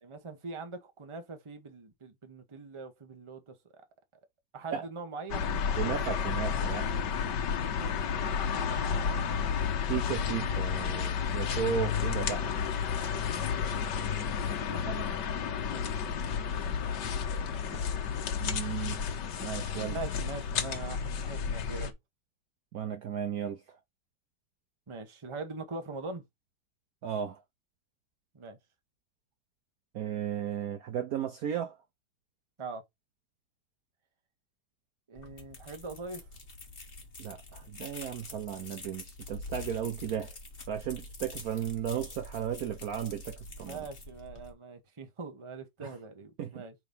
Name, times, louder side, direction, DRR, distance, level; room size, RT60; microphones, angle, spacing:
voice 1, 0.0-3.8 4.5-5.5 7.8-8.1 14.2-14.3 14.7-15.9 16.6-16.8 17.7-17.8 19.9-21.9 24.9-26.2 28.3-28.6 32.6-32.8 35.1-36.3 43.6-46.7, right 3 dB, 20° right, 0.8 m, -42 dB
sound 1, 5.3-21.9, left 7 dB, 70° left, 1.6 m, -31 dB
voice 2, 5.7-6.9 9.1-9.3 9.9-12.5 17.3-17.4 17.7-17.8 18.4-19.0 19.4-20.0 22.7-23.8 27.0-27.4 29.9-31.8 37.2-40.3 40.7-43.8 45.8-46.0 46.4-46.6, right 9 dB, 65° right, 1.0 m, -35 dB
sound 2, 35.2-44.5, left 3 dB, 30° left, 1.6 m, -46 dB
4.5 x 4.0 x 5.3 m
omnidirectional pair, 2.0 m